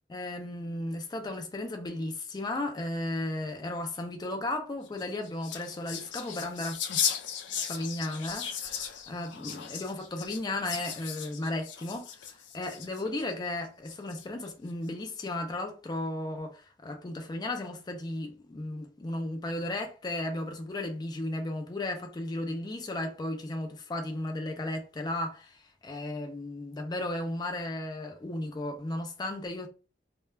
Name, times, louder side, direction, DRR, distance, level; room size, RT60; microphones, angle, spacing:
voice 1, 0.1-6.8 7.6-29.7, left 1 dB, 25° left, 0.3 m, -35 dB
sound 1, 4.9-13.3 13.9-14.5, left 8 dB, 85° left, 0.4 m, -36 dB
2.2 x 2.2 x 3.2 m
head